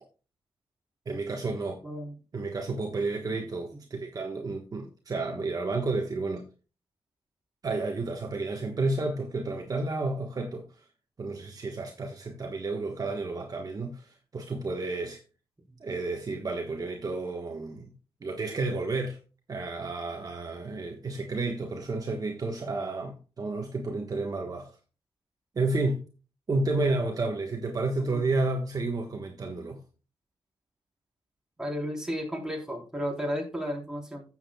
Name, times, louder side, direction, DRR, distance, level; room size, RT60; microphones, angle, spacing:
voice 1, 1.0-1.8 2.3-6.5 7.6-10.9 11.2-15.2 15.8-17.9 18.2-19.2 19.5-24.8 25.5-26.0 26.5-29.8, right 3 dB, 40° right, 1.3 m, -31 dB
voice 2, 1.8-2.1 28.1-28.2 31.6-34.2, equal, 5° right, 3.7 m, -33 dB
15.5 x 7.4 x 2.3 m
cardioid pair, 105°, 9 cm